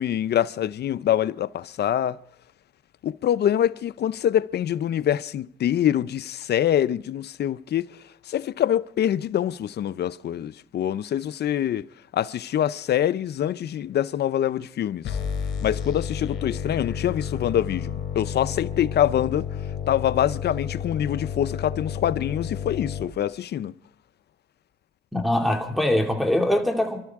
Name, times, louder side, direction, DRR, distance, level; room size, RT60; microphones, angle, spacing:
voice 1, 0.0-2.2 3.0-8.0 8.3-11.9 12.1-15.2 15.6-19.5 19.9-23.7, left 10 dB, 55° left, 0.6 m, -25 dB
sound 1, 15.0-23.0, left 7 dB, 75° left, 3.2 m, -31 dB
voice 2, 25.1-27.0, left 1 dB, ahead, 2.4 m, -22 dB
28.5 x 12.5 x 3.6 m
cardioid pair, 90°, 20 cm